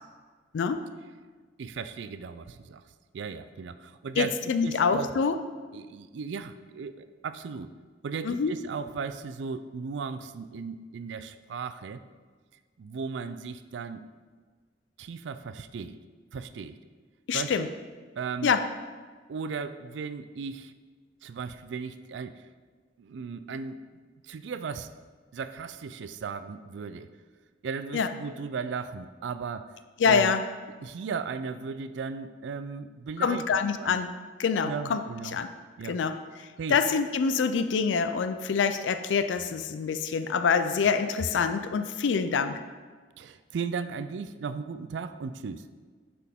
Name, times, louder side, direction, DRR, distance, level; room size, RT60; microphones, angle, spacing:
voice 1, 1.6-2.8 3.1-4.3 4.6-5.1 5.7-7.7 8.0-12.0 12.8-14.0 15.0-16.0 16.3-16.8 17.3-17.7 18.2-18.5 19.3-20.7 21.2-22.4 23.0-23.8 24.2-24.9 25.3-27.1 27.6-29.7 30.0-30.4 30.8-33.4 33.8-34.0 34.7-35.4 35.8-36.0 36.6-36.8 43.2-45.7, right 5 dB, 75° right, 11 dB, 0.4 m, -36 dB
voice 2, 4.2-5.3 8.2-8.5 17.3-17.7 18.4-18.6 27.9-28.1 30.0-30.4 33.2-34.1 34.4-35.0 35.3-35.5 35.8-36.1 36.4-42.6, left 5 dB, 80° left, 9 dB, 0.4 m, -26 dB
9.7 x 4.3 x 3.6 m, 1.5 s
head